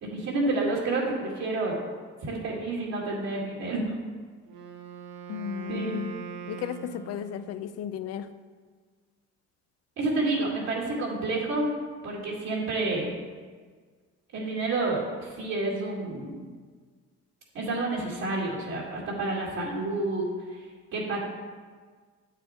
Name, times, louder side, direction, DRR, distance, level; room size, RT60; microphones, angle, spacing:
voice 1, 0.0-1.8 2.2-3.9 5.7-6.0 10.0-11.7 12.0-13.2 14.3-16.4 17.5-20.2 20.5-20.6 20.9-21.2, right 2 dB, 60° right, -4 dB, 2.4 m, -29 dB
Wind instrument woodwind instrument, 4.4-7.7, right 8 dB, 80° right, 0.9 m, -42 dB
voice 2, 5.3-8.3, left 8 dB, 55° left, 12 dB, 0.6 m, -35 dB
8.5 x 6.7 x 4.4 m, 1.5 s
cardioid pair, 105°, 30 cm